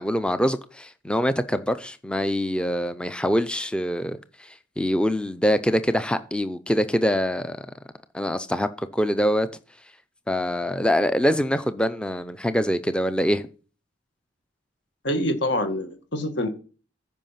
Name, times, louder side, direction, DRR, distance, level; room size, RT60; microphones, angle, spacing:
voice 1, 0.0-7.7 8.1-9.5 10.3-13.5, equal, 5° left, 0.5 m, -24 dB
voice 2, 15.0-16.5, left 1 dB, 60° left, 1.7 m, -25 dB
14.5 x 5.5 x 5.8 m
head